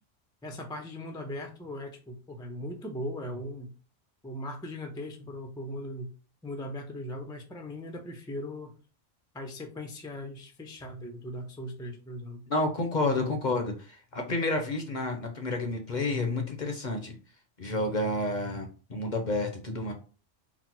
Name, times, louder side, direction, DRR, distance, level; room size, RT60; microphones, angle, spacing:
voice 1, 0.4-3.7 4.2-6.1 6.4-8.8 9.3-12.5, left 1 dB, 5° left, 4 dB, 0.4 m, -39 dB
voice 2, 12.5-17.1 17.6-19.9, left 2 dB, 45° left, 4 dB, 0.7 m, -30 dB
4.0 x 2.1 x 4.4 m, 0.36 s
omnidirectional pair, 1.3 m